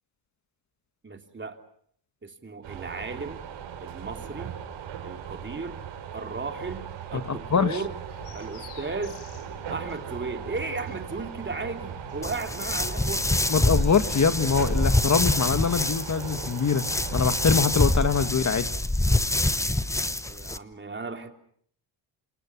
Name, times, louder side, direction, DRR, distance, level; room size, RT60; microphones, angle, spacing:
voice 1, 1.0-1.6 2.2-3.4 3.8-4.6 5.0-5.8 6.1-8.0 8.3-9.2 9.7-13.3 20.2-21.3, right 3 dB, 25° right, 4 dB, 3.3 m, -35 dB
sound 1, 2.6-18.3, right 9 dB, 75° right, 6.1 m, -39 dB
voice 2, 7.3-7.8 13.5-16.8 17.1-18.7, left 6 dB, 35° left, 10 dB, 2.0 m, -24 dB
sound 2, 8.1-15.3, left 8 dB, 85° left, 3.6 m, -48 dB
sound 3, 12.2-20.6, left 1 dB, 5° left, 1.0 m, -26 dB
28.0 x 27.5 x 6.2 m, 0.65 s
cardioid pair, 90°, 48 cm